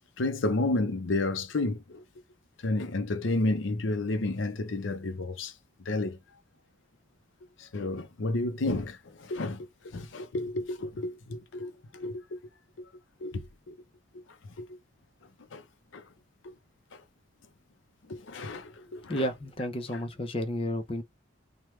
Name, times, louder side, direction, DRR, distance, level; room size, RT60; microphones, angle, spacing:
voice 1, 0.2-2.0 2.6-5.5 5.9-6.2 7.6-12.4 12.8-12.9 13.2-13.8 14.1-14.2 14.6-14.8 15.5-15.7 15.9-16.0 16.4-16.5 16.9-17.0 18.1-19.3 19.9-20.0, left 2 dB, 80° left, 0.6 m, -31 dB
voice 2, 18.9-21.0, equal, 30° left, 0.6 m, -32 dB
3.2 x 2.2 x 3.1 m
head